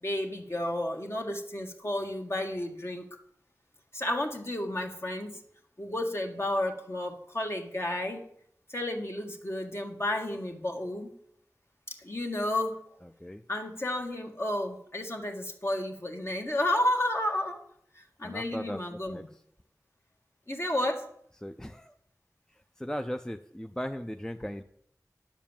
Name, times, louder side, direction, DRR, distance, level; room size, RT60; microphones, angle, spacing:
voice 1, 0.0-3.0 3.9-5.4 5.8-8.3 8.7-11.1 11.9-12.8 13.5-17.6 17.9-19.3 20.5-21.1, left 1 dB, 40° left, 3 dB, 1.7 m, -32 dB
voice 2, 18.2-19.2 21.4-21.9 22.8-24.6, equal, 10° left, 7 dB, 0.5 m, -37 dB
10.5 x 7.3 x 7.2 m, 0.70 s
wide cardioid pair, 55°, 7 cm